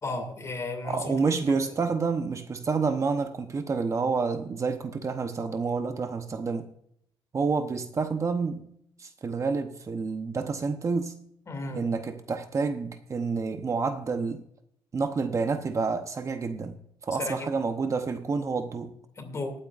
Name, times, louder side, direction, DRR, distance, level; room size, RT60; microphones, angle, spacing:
voice 1, 0.0-1.1 11.5-11.9 17.2-17.5 19.2-19.6, left 2 dB, 35° left, 2.6 m, -34 dB
voice 2, 0.8-6.7 7.3-8.6 9.0-11.2 11.7-14.4 14.9-16.8 17.0-19.0, right 4 dB, 35° right, 0.9 m, -29 dB
19.5 x 8.9 x 2.5 m
cardioid pair, 125°, 9 cm